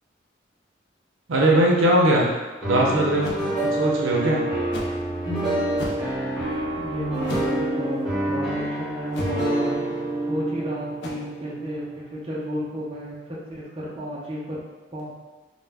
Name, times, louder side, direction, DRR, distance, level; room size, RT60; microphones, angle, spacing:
voice 1, 1.3-3.4 3.6-4.4, right 1 dB, 85° right, -2 dB, 0.5 m, -20 dB
sound 1, 2.6-12.5, right 1 dB, ahead, 0.8 m, -27 dB
sound 2, 3.2-3.4 4.7-5.0 5.7-6.1 7.2-7.6 9.1-9.5 11.0-11.1, left 1 dB, 60° left, 0.4 m, -34 dB
voice 2, 6.8-9.9 10.3-13.2 13.5-14.6 14.9-15.1, equal, 30° right, -6 dB, 0.5 m, -32 dB
2.1 x 2.0 x 3.3 m, 1.2 s
head